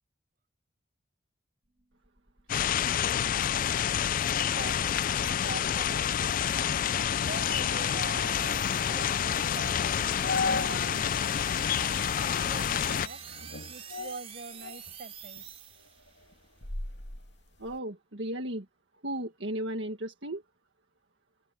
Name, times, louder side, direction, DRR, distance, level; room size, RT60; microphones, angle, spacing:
sound 1, 1.7-16.3, right 6 dB, 35° right, 4.2 m, -47 dB
sound 2, 2.5-13.1, left 9 dB, 45° left, 0.4 m, -28 dB
voice 1, 3.1-3.4 4.3-6.6 7.2-9.8 10.4-11.2 12.2-13.2 13.7-15.4, right 3 dB, 50° right, 6.4 m, -44 dB
sound 3, 6.6-11.1 11.4-11.5 12.2-12.5 12.9-15.0 15.4-17.8, left 3 dB, 65° left, 3.1 m, -38 dB
voice 2, 17.6-18.7 19.0-20.4, right 1 dB, 70° right, 1.8 m, -35 dB
open air
head